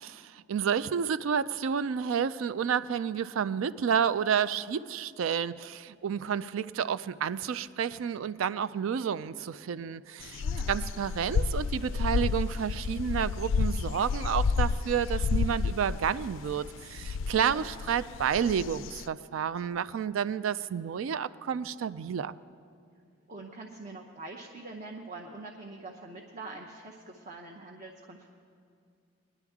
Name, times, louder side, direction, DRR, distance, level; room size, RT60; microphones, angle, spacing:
voice 1, 0.3-22.4, right 7 dB, 90° right, 16 dB, 0.4 m, -30 dB
sound 1, 10.2-19.1, left 5 dB, 75° left, 0.3 m, -31 dB
voice 2, 10.4-10.8 17.5-17.7 23.3-28.3, right 2 dB, 35° right, 1 dB, 0.7 m, -44 dB
21.0 x 11.0 x 3.5 m, 2.3 s
head